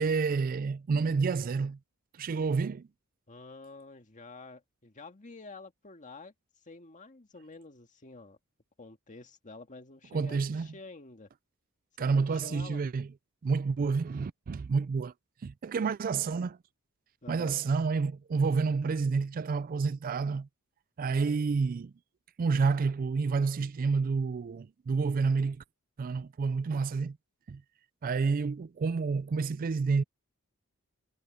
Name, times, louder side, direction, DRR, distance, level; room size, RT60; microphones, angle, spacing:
voice 1, 0.0-1.8 2.2-2.8 10.1-10.7 12.0-13.1 13.4-15.1 15.4-16.6 17.3-20.5 21.0-21.9 22.4-25.6 26.0-27.2 27.5-27.6 28.0-30.0, right 4 dB, 40° right, 0.3 m, -29 dB
voice 2, 3.3-6.3 6.6-8.4 8.8-11.3 12.1-12.8 17.2-17.6, left 3 dB, 35° left, 1.9 m, -49 dB
head